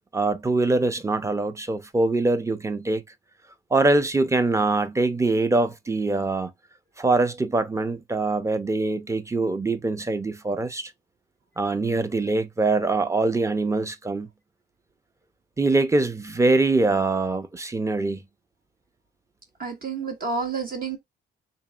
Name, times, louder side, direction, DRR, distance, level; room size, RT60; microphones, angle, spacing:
voice 1, 0.1-3.0 3.7-6.5 7.0-10.9 11.6-14.3 15.6-18.2, right 2 dB, 15° right, 0.6 m, -23 dB
voice 2, 19.6-21.0, right 4 dB, 45° right, 1.1 m, -29 dB
3.9 x 3.3 x 2.3 m
cardioid pair, 90°, 20 cm